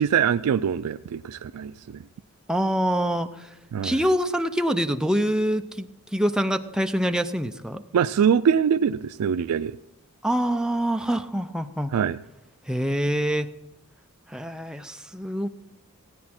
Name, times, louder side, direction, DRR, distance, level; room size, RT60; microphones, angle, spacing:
voice 1, 0.0-2.0 3.7-4.0 7.9-9.8 11.9-12.2, right 7 dB, 85° right, 11 dB, 0.3 m, -23 dB
voice 2, 2.5-3.5 3.8-7.8 10.2-11.9 12.7-13.5 14.3-15.5, equal, 5° right, 7 dB, 0.5 m, -25 dB
16.5 x 9.5 x 4.3 m, 0.90 s
head